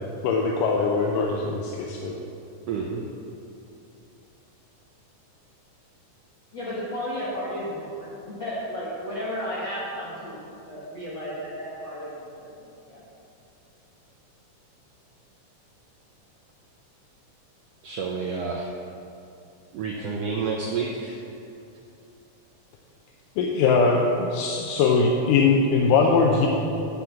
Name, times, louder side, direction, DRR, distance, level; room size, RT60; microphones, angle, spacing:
voice 1, 0.2-2.2 23.4-26.5, left 4 dB, 85° left, 0 dB, 2.3 m, -21 dB
voice 2, 2.7-3.0 17.8-18.7 19.7-21.2, right 5 dB, 85° right, -1 dB, 1.4 m, -29 dB
voice 3, 6.5-12.5 12.9-13.0, equal, 45° left, -9 dB, 1.9 m, -33 dB
8.6 x 6.1 x 7.2 m, 2.7 s
omnidirectional pair, 3.7 m